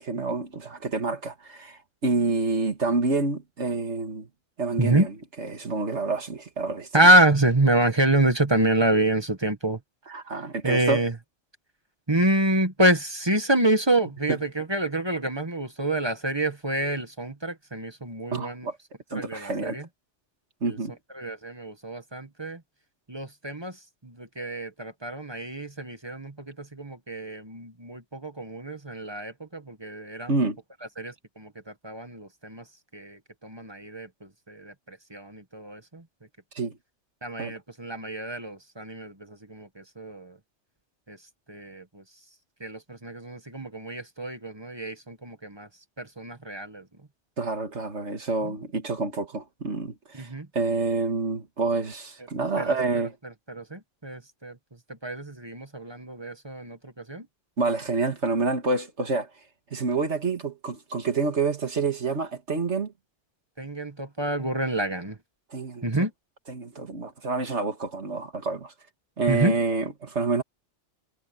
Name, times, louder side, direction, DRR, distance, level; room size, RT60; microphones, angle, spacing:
voice 1, 0.0-4.3 4.6-6.9 10.1-11.0 14.3-14.4 18.3-18.8 19.1-19.8 20.6-21.0 30.3-30.6 36.5-36.8 37.4-37.5 47.4-53.2 57.6-59.3 59.7-62.9 65.5-66.1 66.5-68.7 69.2-70.4, right 3 dB, 75° right, 2.3 m, -28 dB
voice 2, 6.9-9.8 10.6-11.1 12.1-18.7 19.1-19.8 20.7-20.8 21.2-22.6 23.1-23.7 24.0-30.3 31.0-31.5 31.8-32.6 32.9-34.1 34.5-36.0 37.2-40.3 41.1-41.2 41.5-42.0 42.6-45.7 46.0-46.8 50.1-50.5 52.6-52.7 53.5-54.6 55.0-57.3 63.6-65.2 65.8-66.1 69.3-69.6, right 1 dB, 20° right, 1.6 m, -27 dB
omnidirectional pair, 1.2 m